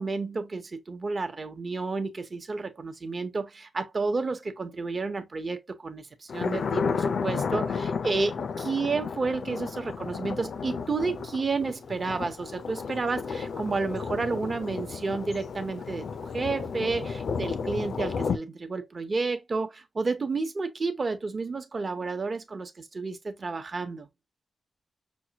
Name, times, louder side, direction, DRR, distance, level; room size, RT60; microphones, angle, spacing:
voice 1, 0.0-16.1 16.3-24.1, right 4 dB, 40° right, 0.9 m, -31 dB
Thunder, 6.3-18.4, left 5 dB, 70° left, 0.5 m, -32 dB
6.1 x 2.3 x 2.9 m
wide cardioid pair, 155°, 0 cm